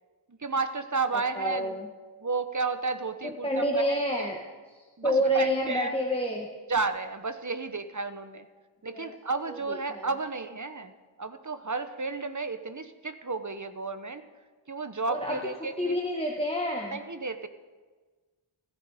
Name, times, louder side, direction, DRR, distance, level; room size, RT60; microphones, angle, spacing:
voice 1, 0.3-1.8 2.2-4.3 5.0-6.0 6.7-8.5 8.8-10.9 11.2-14.2 14.7-16.0 16.9-17.5, right 4 dB, 35° right, 10 dB, 1.0 m, -32 dB
voice 2, 1.3-1.9 3.2-4.4 4.7-6.5 8.9-9.1 9.5-10.1 15.1-15.4 15.8-17.0, equal, 10° left, -1 dB, 1.6 m, -28 dB
15.5 x 14.5 x 5.0 m, 1.4 s
wide cardioid pair, 45°, 49 cm